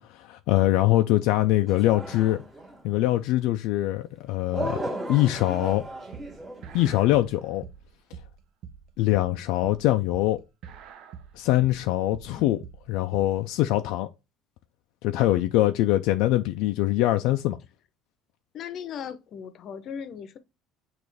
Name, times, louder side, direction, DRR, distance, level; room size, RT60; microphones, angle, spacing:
voice 1, 0.0-2.4 2.8-4.8 5.1-5.9 6.7-7.6 9.0-10.4 11.4-12.6 12.9-14.1 15.0-17.6, left 15 dB, 80° left, 0.3 m, -23 dB
sound 1, 1.7-2.9 4.5-7.1, right 2 dB, 25° right, 1.6 m, -36 dB
sound 2, 5.7-13.4, right 7 dB, 60° right, 0.6 m, -45 dB
voice 2, 12.2-12.6 18.5-20.4, left 8 dB, 50° left, 0.7 m, -38 dB
6.1 x 2.5 x 3.3 m
cardioid pair, 120°, 0 cm